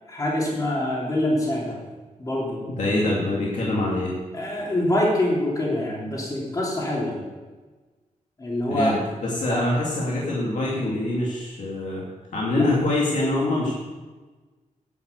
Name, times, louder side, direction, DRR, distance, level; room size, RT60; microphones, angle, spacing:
voice 1, 0.1-1.8 2.2-2.6 4.3-7.2 8.4-8.9 9.5-9.6 12.5-12.7, left 1 dB, 25° left, -4 dB, 3.0 m, -25 dB
voice 2, 2.7-4.1 8.7-12.1 12.3-13.7, left 2 dB, 70° left, -4 dB, 2.6 m, -24 dB
10.5 x 8.3 x 8.2 m, 1.3 s
wide cardioid pair, 165°, 13 cm